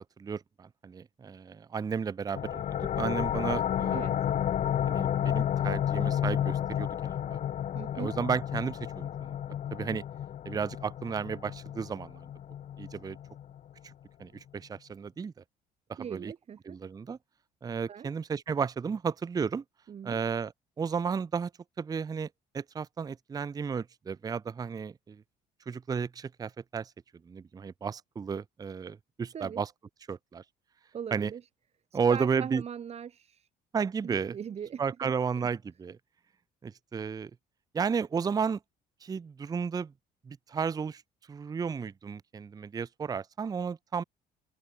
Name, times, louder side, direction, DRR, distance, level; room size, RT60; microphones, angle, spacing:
voice 1, 0.2-2.6 3.0-4.1 4.9-7.4 7.9-9.3 9.7-10.0 10.5-12.2 12.8-13.2 13.8-13.9 14.2-15.3 15.9-16.3 16.7-17.2 17.6-19.6 20.0-20.5 20.8-21.5 21.8-22.3 22.5-25.2 25.7-26.9 27.3-29.7 30.1-30.4 31.1-31.3 31.9-32.6 33.7-34.4 34.8-36.0 36.6-37.3 37.7-38.6 39.0-39.9 40.3-41.0 41.3-44.0, right 6 dB, 20° right, 0.5 m, -33 dB
sound 1, 2.3-13.7, left 10 dB, 45° left, 0.7 m, -31 dB
voice 2, 7.7-8.1 16.0-16.8 17.9-18.1 19.9-20.2 29.3-29.6 30.9-31.5 31.9-33.5 34.0-35.1, right 8 dB, 40° right, 1.0 m, -40 dB
open air
cardioid pair, 110°, 17 cm